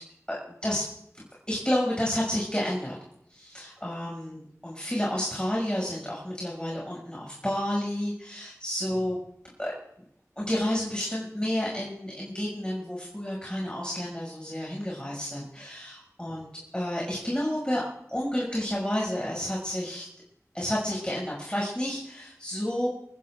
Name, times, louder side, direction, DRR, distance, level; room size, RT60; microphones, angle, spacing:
voice 1, 0.3-3.0 3.3-9.2 9.6-9.7 10.4-16.4 16.7-17.8 18.1-20.1 20.5-22.9, left 1 dB, 15° left, -4 dB, 6.3 m, -30 dB
28.0 x 15.5 x 2.5 m, 0.74 s
wide cardioid pair, 40°, 6 cm